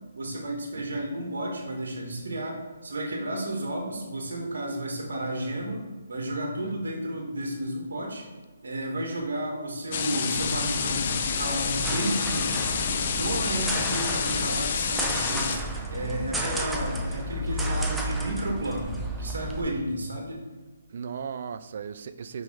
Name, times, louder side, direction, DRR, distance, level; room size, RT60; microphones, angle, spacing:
voice 1, 0.1-5.8 6.1-8.3 8.6-12.6 13.1-20.4, right 1 dB, 75° right, 0 dB, 2.0 m, -32 dB
voice 2, 0.8-1.1 6.6-6.9 13.3-13.7 20.9-22.4, right 6 dB, 55° right, 12 dB, 0.5 m, -38 dB
sound 1, 9.9-15.6, left 6 dB, 45° left, 0.7 m, -28 dB
sound 2, 10.3-19.6, right 1 dB, 5° right, 0.7 m, -32 dB
5.4 x 5.1 x 4.8 m, 1.3 s
hypercardioid pair, 150°, 0 cm